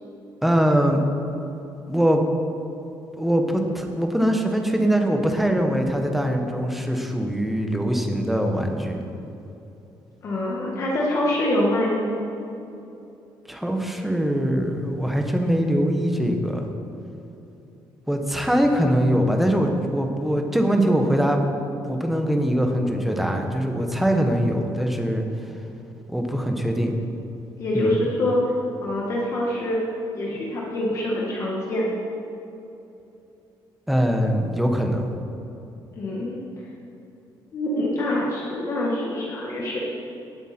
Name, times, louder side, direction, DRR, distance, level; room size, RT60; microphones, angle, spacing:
voice 1, 0.4-1.0 1.9-2.2 3.2-3.4 3.7-9.0 13.5-16.7 18.1-21.4 21.9-25.2 26.1-26.9 27.7-28.0 33.9-35.1, equal, ahead, 3 dB, 1.0 m, -22 dB
voice 2, 10.2-12.1 27.6-28.5 28.8-29.8 30.1-31.8 36.0-36.4 37.5-39.8, left 1 dB, 40° left, -4 dB, 1.6 m, -25 dB
18.5 x 8.0 x 4.3 m, 2.8 s
cardioid pair, 175°, 8 cm